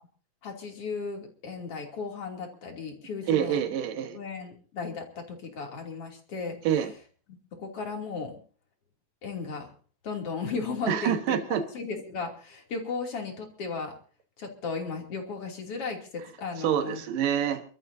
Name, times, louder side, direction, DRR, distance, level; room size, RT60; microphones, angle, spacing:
voice 1, 0.4-3.7 4.1-6.9 7.5-8.4 9.2-9.7 10.0-11.4 11.7-14.0 14.4-17.0, left 4 dB, 45° left, 2 dB, 3.7 m, -35 dB
voice 2, 3.3-4.2 6.6-6.9 10.9-11.6 16.6-17.6, right 9 dB, 80° right, 7 dB, 3.1 m, -26 dB
29.0 x 13.5 x 2.8 m, 0.40 s
omnidirectional pair, 3.8 m